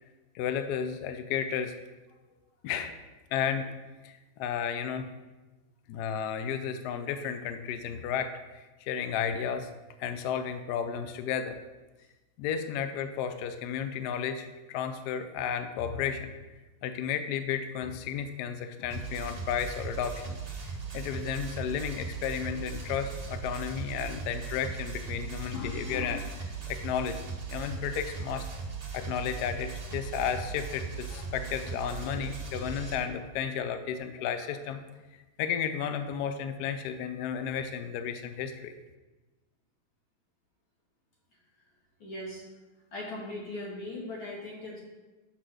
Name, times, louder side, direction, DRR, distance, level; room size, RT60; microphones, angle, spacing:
voice 1, 0.3-1.7 2.6-2.9 3.3-3.7 4.0-5.1 5.9-9.7 10.0-11.6 12.4-16.3 16.8-20.4 20.9-28.5 28.9-34.8 35.4-38.7, left 8 dB, 70° left, 8 dB, 1.0 m, -33 dB
sound 1, 18.9-32.9, right 5 dB, 55° right, 0.4 m, -38 dB
voice 2, 42.0-42.4 42.9-44.8, left 1 dB, 90° left, -4 dB, 2.7 m, -39 dB
6.1 x 4.1 x 6.4 m, 1.2 s
omnidirectional pair, 2.1 m